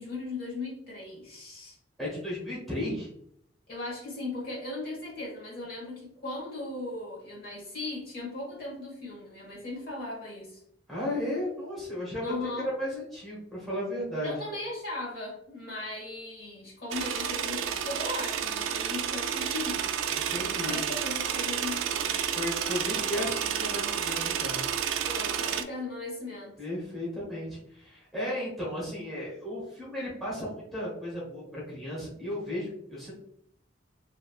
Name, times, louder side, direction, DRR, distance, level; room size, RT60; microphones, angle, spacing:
voice 1, 0.0-1.8 3.7-10.6 12.2-12.7 14.2-19.8 20.3-22.2 25.1-26.5, left 2 dB, 45° left, -4 dB, 1.2 m, -38 dB
voice 2, 2.0-3.1 10.9-12.3 12.8-14.3 20.1-20.8 22.3-24.6 26.6-33.1, left 1 dB, ahead, -6 dB, 1.0 m, -34 dB
sound 1, 16.9-25.6, right 8 dB, 85° right, 0.3 m, -30 dB
3.0 x 2.8 x 2.3 m, 0.73 s
head